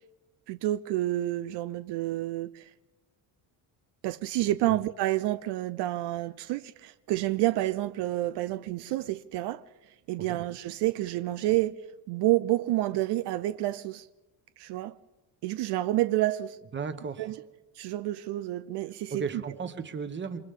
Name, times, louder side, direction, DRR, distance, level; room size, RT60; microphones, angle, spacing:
voice 1, 0.5-2.7 4.0-9.6 10.1-14.1 14.6-15.0 15.4-16.6 17.2-17.4 17.8-19.3, right 15 dB, 70° right, 0.7 m, -29 dB
voice 2, 16.7-17.3 19.1-20.4, right 5 dB, 25° right, 1.3 m, -35 dB
28.0 x 24.5 x 3.8 m
cardioid pair, 145°, 42 cm